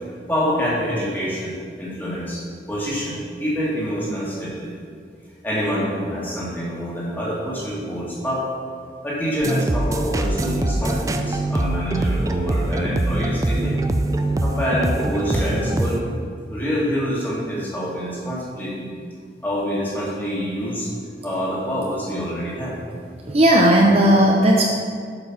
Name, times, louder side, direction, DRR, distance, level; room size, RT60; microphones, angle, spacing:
voice 1, 0.0-2.4 2.7-4.7 5.4-8.5 9.0-13.8 14.4-16.2 16.5-18.9 19.4-20.9 21.2-22.8, equal, 10° left, -7 dB, 1.9 m, -26 dB
sound 1, 9.4-16.0, right 1 dB, 20° right, 0.3 m, -23 dB
voice 2, 23.3-24.6, right 1 dB, 35° right, -1 dB, 0.7 m, -15 dB
8.2 x 5.4 x 5.9 m, 2.1 s
head